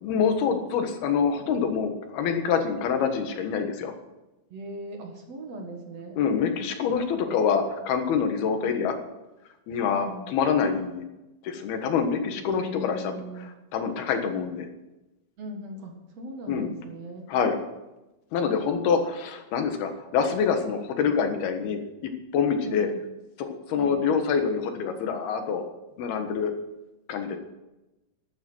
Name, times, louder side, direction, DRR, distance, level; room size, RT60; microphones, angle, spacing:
voice 1, 0.0-3.9 6.2-8.9 9.7-11.1 11.4-14.7 16.5-16.7 17.3-17.6 18.3-22.9 23.4-25.6 26.0-26.5 27.1-27.4, left 6 dB, 85° left, 6 dB, 3.4 m, -26 dB
voice 2, 4.5-6.2 8.6-8.9 9.9-10.3 12.6-13.5 14.2-14.4 15.4-17.3 22.6-23.0 23.8-24.1, right 1 dB, 50° right, 2 dB, 2.3 m, -39 dB
12.0 x 11.5 x 6.3 m, 0.99 s
omnidirectional pair, 4.3 m